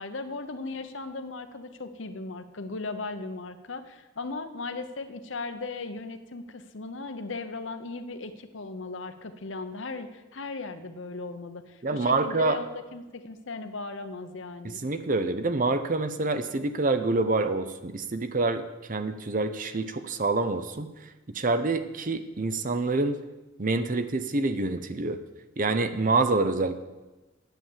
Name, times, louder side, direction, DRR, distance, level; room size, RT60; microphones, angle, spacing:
voice 1, 0.0-14.8, left 3 dB, 75° left, 9 dB, 0.9 m, -37 dB
voice 2, 11.8-12.6 14.6-18.6 18.9-20.9 21.3-23.2 23.6-25.2 25.6-26.7, right 3 dB, 40° right, 10 dB, 0.7 m, -26 dB
9.2 x 8.5 x 7.4 m, 1.1 s
head